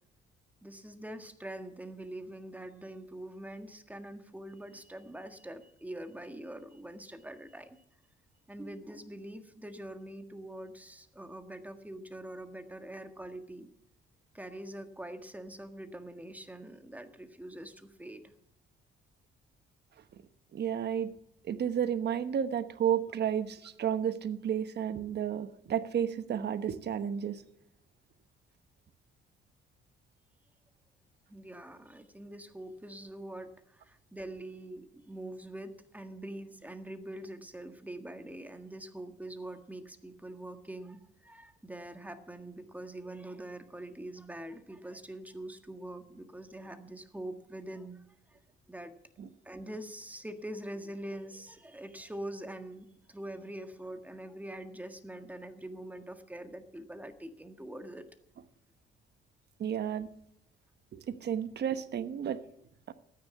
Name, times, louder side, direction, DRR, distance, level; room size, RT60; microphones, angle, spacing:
voice 1, 0.6-7.8 8.5-13.7 14.3-18.3 31.3-48.4 48.7-48.9 49.4-58.1, right 1 dB, 10° right, 7 dB, 1.7 m, -44 dB
voice 2, 20.5-21.1 21.5-27.4 49.2-49.3 59.6-60.1 60.9-62.4 62.9-63.0, right 9 dB, 55° right, 11 dB, 1.2 m, -32 dB
13.5 x 9.5 x 7.5 m, 0.76 s
cardioid pair, 90°, 20 cm